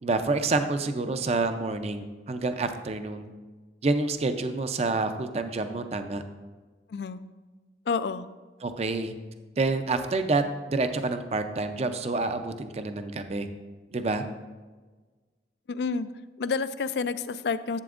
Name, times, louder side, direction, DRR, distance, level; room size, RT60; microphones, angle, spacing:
voice 1, 0.0-3.3 3.8-6.2 8.6-9.1 9.6-13.5 13.9-14.2, right 3 dB, 35° right, 8 dB, 0.5 m, -28 dB
voice 2, 7.9-8.3 15.7-16.1 16.4-17.8, left 5 dB, 65° left, 14 dB, 0.4 m, -29 dB
11.0 x 7.8 x 2.5 m, 1.3 s
head